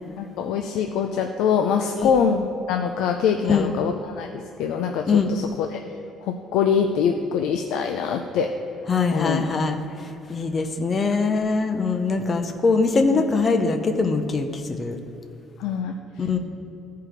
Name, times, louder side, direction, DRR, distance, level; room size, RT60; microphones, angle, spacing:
voice 1, 0.2-5.8 6.2-8.5 9.1-9.5 13.1-13.2 15.6-16.4, left 7 dB, 70° left, 4 dB, 0.5 m, -24 dB
voice 2, 8.9-15.0 16.2-16.4, left 4 dB, 25° left, 7 dB, 0.6 m, -22 dB
13.5 x 4.7 x 5.1 m, 2.9 s
cardioid pair, 170°, 0 cm